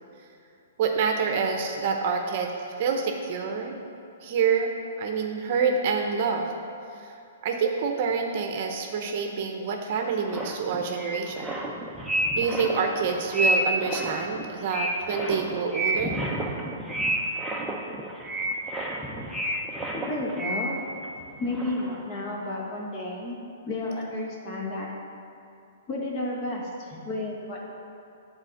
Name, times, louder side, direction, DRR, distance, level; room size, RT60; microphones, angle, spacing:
voice 1, 0.8-2.5 2.8-3.8 4.2-4.7 5.0-6.5 6.9-7.2 7.4-11.5 12.3-16.2, right 5 dB, 50° right, 3 dB, 0.7 m, -27 dB
sound 1, 10.2-21.2 21.5-22.0, right 1 dB, 5° right, 0.7 m, -30 dB
voice 2, 19.9-20.8 21.3-23.4 23.6-24.9 25.9-27.7, left 2 dB, 30° left, -3 dB, 1.2 m, -32 dB
7.4 x 4.3 x 6.4 m, 2.6 s
hypercardioid pair, 140°, 0 cm